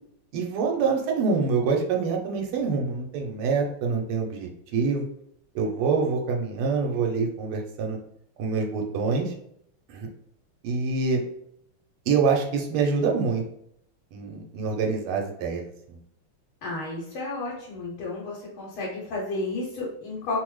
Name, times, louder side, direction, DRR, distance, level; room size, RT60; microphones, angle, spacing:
voice 1, 0.3-5.0 5.5-8.0 8.4-9.3 9.9-10.1 10.6-11.2 12.1-13.4 14.1-15.6 15.9-16.0, right 5 dB, 85° right, 2 dB, 1.5 m, -25 dB
voice 2, 16.6-20.4, left 2 dB, 75° left, -5 dB, 1.6 m, -32 dB
3.6 x 2.0 x 3.0 m, 0.73 s
omnidirectional pair, 2.4 m